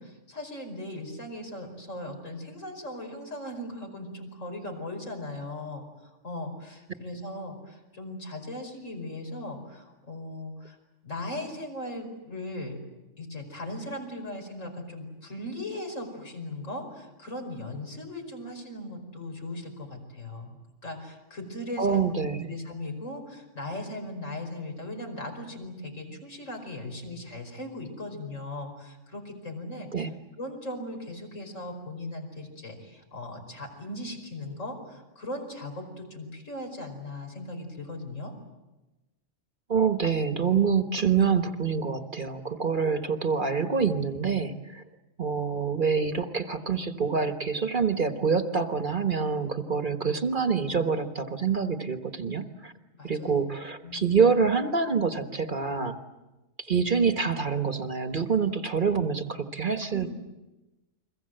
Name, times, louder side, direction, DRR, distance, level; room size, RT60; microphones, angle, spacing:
voice 1, 0.0-5.9 6.2-10.8 11.0-12.8 13.2-20.6 20.8-22.1 22.4-30.1 30.4-38.3 53.0-53.4 53.8-54.1 59.9-60.1, left 1 dB, 75° left, 3 dB, 5.5 m, -38 dB
voice 2, 21.8-22.5 29.9-30.1 39.7-44.8 45.2-52.7 53.0-56.0 56.6-60.1, right 5 dB, 40° right, 8 dB, 1.4 m, -26 dB
30.0 x 23.0 x 7.8 m, 1.1 s
omnidirectional pair, 1.3 m